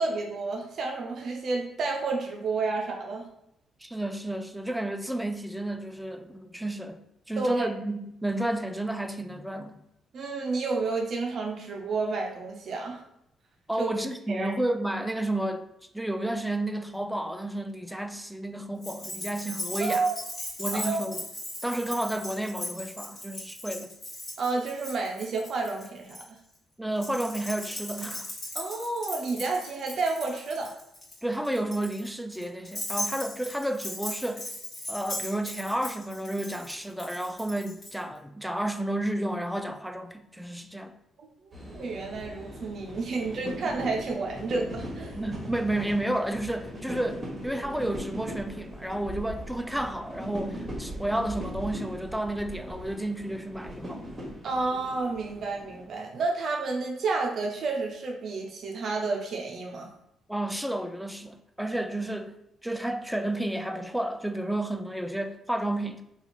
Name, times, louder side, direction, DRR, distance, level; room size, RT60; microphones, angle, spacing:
voice 1, 0.0-3.3 7.4-7.7 10.1-13.0 13.8-13.9 14.3-14.5 19.8-20.2 20.7-21.0 24.4-26.4 28.5-30.7 41.7-45.2 54.4-59.9, right 3 dB, 60° right, 0.5 m, -30 dB
voice 2, 3.8-7.0 7.3-9.8 13.7-15.7 15.9-20.1 20.6-21.2 21.6-23.9 26.8-28.3 31.2-34.5 34.9-41.0 45.1-54.1 60.3-62.4 62.6-66.0, right 1 dB, ahead, 0.3 m, -31 dB
Keys jangling, 18.8-26.2 27.0-37.9, left 1 dB, 35° left, 1.3 m, -38 dB
sound 1, 41.5-55.9, equal, 25° right, 1.1 m, -39 dB
2.8 x 2.4 x 4.2 m
cardioid pair, 90°, 0 cm